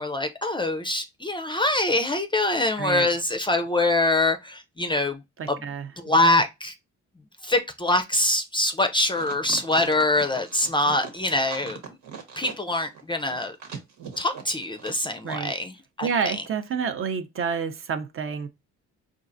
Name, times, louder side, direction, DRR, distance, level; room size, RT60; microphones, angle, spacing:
voice 1, 0.0-5.2 5.5-5.6 6.0-6.7 7.4-13.6 14.2-16.4, left 2 dB, 15° left, 0.4 m, -24 dB
voice 2, 5.4-5.9 15.2-15.5 16.0-18.5, right 6 dB, 45° right, 0.6 m, -28 dB
sound 1, 9.1-15.0 15.3-15.4, right 6 dB, 75° right, 1.2 m, -40 dB
4.5 x 2.4 x 2.5 m
cardioid pair, 90°, 30 cm